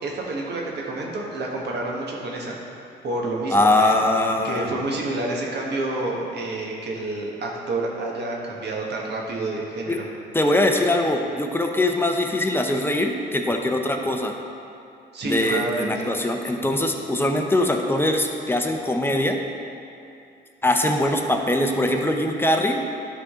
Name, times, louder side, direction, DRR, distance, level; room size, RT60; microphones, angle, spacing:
voice 1, 0.0-2.6 3.0-4.0 4.4-10.0 15.1-16.1, right 2 dB, 60° right, -2 dB, 1.4 m, -29 dB
voice 2, 3.5-4.7 9.9-10.0 10.3-14.4 15.2-19.4 20.6-22.8, left 1 dB, 10° left, 3 dB, 0.7 m, -22 dB
11.5 x 3.8 x 3.7 m, 2.6 s
cardioid pair, 90°, 20 cm